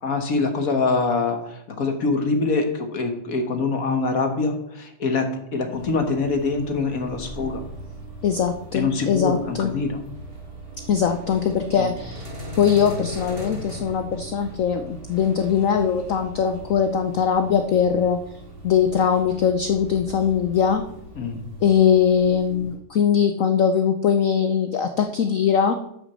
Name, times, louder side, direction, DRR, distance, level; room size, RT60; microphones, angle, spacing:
voice 1, 0.0-7.6 8.7-10.0 11.8-11.9 21.2-21.4, left 3 dB, 50° left, 5 dB, 1.5 m, -24 dB
sound 1, 5.7-22.8, right 1 dB, 30° right, 2.2 m, -39 dB
voice 2, 8.2-9.7 10.9-12.3 12.6-18.2 18.6-20.8 21.6-25.7, left 7 dB, 80° left, 7 dB, 0.7 m, -21 dB
9.2 x 6.1 x 6.8 m, 0.76 s
omnidirectional pair, 2.2 m